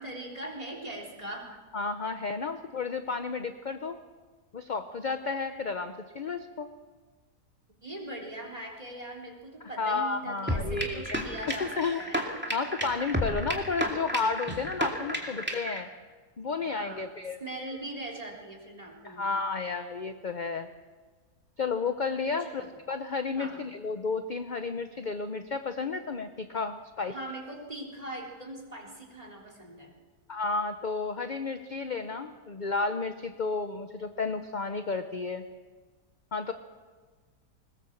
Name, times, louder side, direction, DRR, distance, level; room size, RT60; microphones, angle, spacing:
voice 1, 0.0-1.5 2.3-2.4 7.8-12.2 16.6-17.1 17.4-19.3 22.4-22.7 23.3-23.6 27.1-29.9, right 1 dB, 20° right, 1 dB, 3.6 m, -41 dB
voice 2, 1.7-4.0 4.5-6.7 9.6-11.2 11.6-15.9 16.4-17.4 19.0-20.7 21.6-27.1 30.3-35.4 36.3-36.5, left 4 dB, 40° left, 8 dB, 0.7 m, -32 dB
sound 1, 10.5-15.8, equal, 5° right, 2.4 m, -32 dB
21.5 x 20.0 x 7.3 m, 1.4 s
omnidirectional pair, 1.7 m